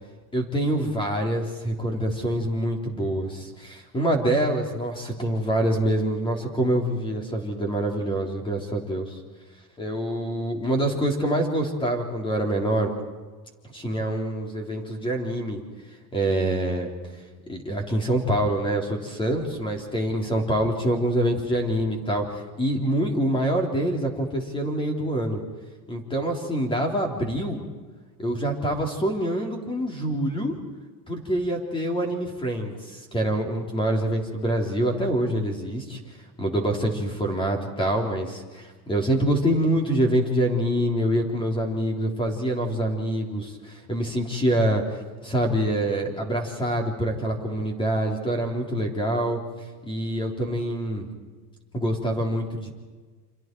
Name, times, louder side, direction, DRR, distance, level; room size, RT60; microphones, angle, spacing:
voice 1, 0.3-9.2 9.8-12.9 13.7-15.6 16.1-16.9 17.5-25.4 25.9-27.6 28.2-30.5 31.1-36.0 36.4-49.4 49.8-51.1 51.7-52.7, right 1 dB, 10° left, 2 dB, 3.7 m, -25 dB
30.0 x 27.5 x 4.7 m, 1.4 s
supercardioid pair, 155°, 49 cm